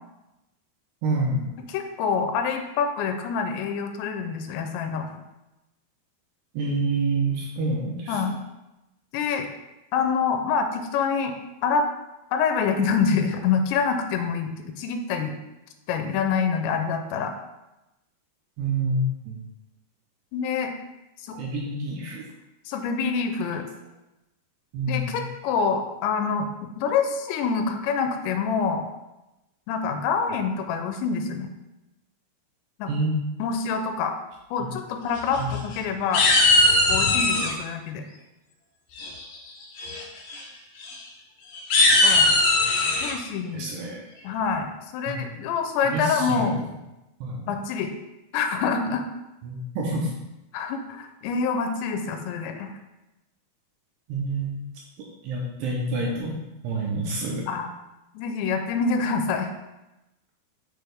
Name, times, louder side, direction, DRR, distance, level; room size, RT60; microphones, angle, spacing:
voice 1, 1.0-1.4 6.5-8.2 18.6-19.4 21.3-22.2 24.7-25.3 32.9-33.2 34.6-34.7 35.4-35.5 43.5-44.0 45.1-45.2 45.9-46.5 47.2-47.5 49.4-50.1 54.1-54.5 55.0-56.4 56.6-57.5, right 2 dB, 75° right, -2 dB, 2.7 m, -27 dB
voice 2, 1.7-5.1 8.1-8.4 9.1-9.5 9.9-11.3 11.6-11.9 12.3-14.5 14.8-15.4 15.9-17.3 20.3-20.7 21.2-21.4 22.7-23.7 24.9-28.8 29.7-31.5 32.8-32.9 33.4-34.1 34.5-36.2 36.9-38.0 42.0-42.3 43.0-43.7 44.2-46.6 47.5-47.9 48.3-49.0 50.5-52.7 57.5-57.7 58.1-59.5, left 5 dB, 85° left, 6 dB, 2.9 m, -26 dB
sound 1, 35.2-35.8 36.1-37.5 39.0-39.4 39.8-40.0 40.3-40.4 40.8-40.9 41.5-43.1, left 2 dB, 70° left, 2.2 m, -20 dB
6.7 x 6.2 x 3.5 m, 0.97 s
omnidirectional pair, 5.2 m